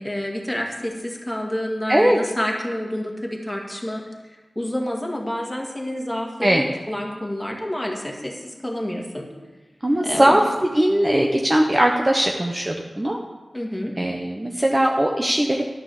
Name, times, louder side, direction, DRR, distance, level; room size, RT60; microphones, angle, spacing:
voice 1, 0.0-4.0 4.6-9.3 10.0-10.5 13.5-13.9, left 1 dB, 10° left, 0 dB, 2.0 m, -28 dB
voice 2, 1.9-2.2 6.4-6.7 9.8-13.2 14.0-15.7, right 1 dB, 20° right, 1 dB, 0.9 m, -20 dB
11.5 x 6.9 x 7.2 m, 1.2 s
wide cardioid pair, 85°, 0 cm